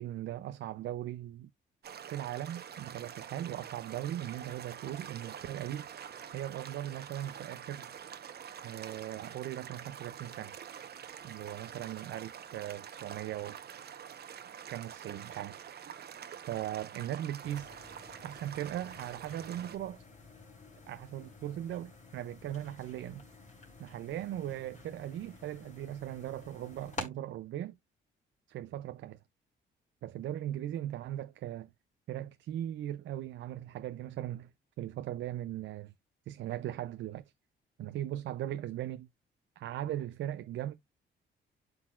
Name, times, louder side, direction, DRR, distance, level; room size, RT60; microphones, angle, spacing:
voice 1, 0.0-1.5 2.1-5.9 6.3-7.9 8.6-10.6 11.2-13.6 14.7-15.6 16.5-17.7 18.2-20.0 20.9-23.2 23.8-27.8 28.5-29.2 30.0-31.7 32.1-34.5 34.8-35.9 36.3-37.3 37.8-39.1 39.6-40.7, right 12 dB, 70° right, 0.5 m, -39 dB
sound 1, 1.8-19.8, right 8 dB, 55° right, 1.0 m, -46 dB
sound 2, 17.4-27.1, left 3 dB, 35° left, 3.5 m, -50 dB
12.0 x 4.0 x 2.4 m
cardioid pair, 90°, 20 cm